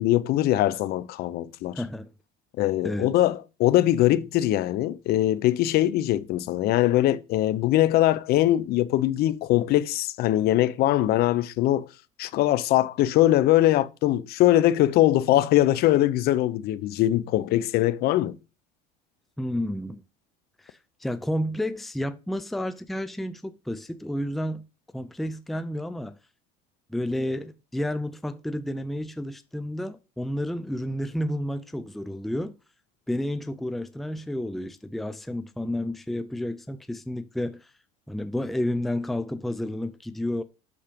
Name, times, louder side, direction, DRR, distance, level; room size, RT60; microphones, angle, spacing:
voice 1, 0.0-1.8 2.6-11.9 12.2-18.4, left 14 dB, 50° left, 0.8 m, -22 dB
voice 2, 1.7-2.1 2.8-3.1 19.4-20.0 20.6-20.7 21.0-24.7 24.9-26.2 26.9-32.6 33.1-37.7 38.1-40.4, left 1 dB, ahead, 0.6 m, -31 dB
8.6 x 6.6 x 5.2 m
cardioid pair, 135°, 20 cm